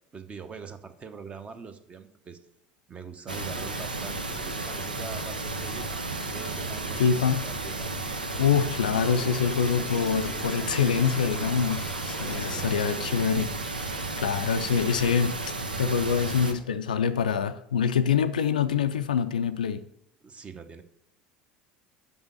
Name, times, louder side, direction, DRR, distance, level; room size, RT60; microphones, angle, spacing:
voice 1, 0.1-2.4 2.9-7.9 12.1-13.2 14.7-14.8 20.2-20.8, right 5 dB, 25° right, 0.8 m, -43 dB
sound 1, 3.3-16.5, right 3 dB, 85° right, 0.6 m, -33 dB
voice 2, 7.0-7.4 8.4-19.8, left 7 dB, 75° left, 0.4 m, -25 dB
Toilet flush, 8.9-13.2, left 3 dB, 10° left, 0.5 m, -43 dB
6.0 x 5.4 x 6.8 m
figure-of-eight pair, 70°, 5 cm